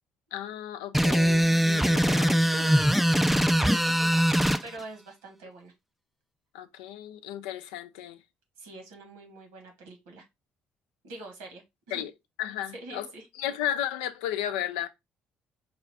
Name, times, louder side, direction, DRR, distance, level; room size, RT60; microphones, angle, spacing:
voice 1, 0.3-2.8 6.5-8.2 11.9-12.1 12.4-13.1 13.4-14.9, left 11 dB, 75° left, 0.4 m, -34 dB
sound 1, 0.9-4.6, equal, ahead, 0.3 m, -22 dB
voice 2, 3.6-5.7 8.6-10.2 11.0-11.6 11.9-12.0 12.7-13.3, right 2 dB, 75° right, 1.3 m, -44 dB
4.9 x 2.4 x 3.5 m
figure-of-eight pair, 45°, 5 cm